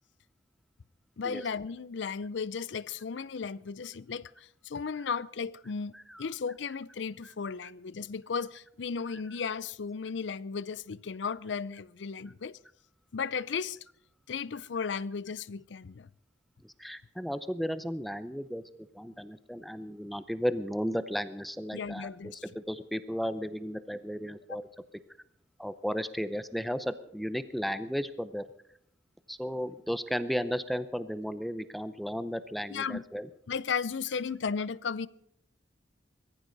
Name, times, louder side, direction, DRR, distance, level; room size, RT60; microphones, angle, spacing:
voice 1, 1.2-5.9 6.2-12.6 13.1-13.8 14.3-16.1 21.7-22.4 24.5-24.6 32.7-33.0 33.5-35.1, left 5 dB, 80° left, 0.5 m, -35 dB
voice 2, 5.9-6.3 7.2-7.3 7.6-7.7 9.1-9.2 16.6-18.6 18.9-24.6 25.6-28.5 29.3-33.3, equal, ahead, 0.6 m, -34 dB
21.0 x 14.5 x 4.0 m
head